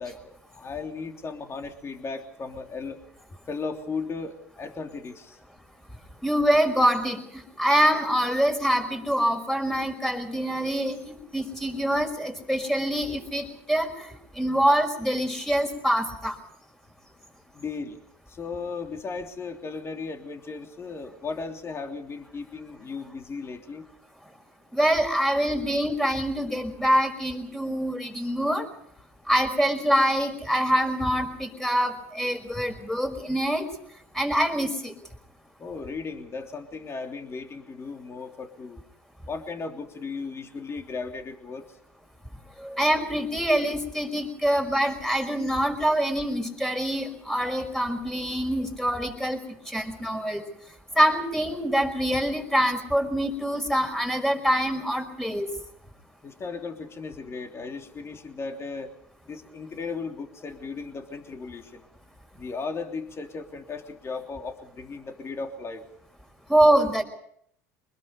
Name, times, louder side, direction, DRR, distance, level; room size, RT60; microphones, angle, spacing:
voice 1, 0.0-3.0 3.5-5.4 17.5-18.0 18.3-23.9 35.6-38.8 39.3-41.7 56.2-58.9 59.3-61.8 62.4-65.8, left 4 dB, 30° left, 4 dB, 3.2 m, -36 dB
voice 2, 6.2-16.4 24.7-28.7 29.3-33.7 34.1-34.9 42.6-49.4 49.7-50.4 51.0-55.5 66.5-67.0, equal, 5° left, 4 dB, 5.7 m, -25 dB
25.0 x 21.0 x 5.4 m, 0.68 s
hypercardioid pair, 80°, 8 cm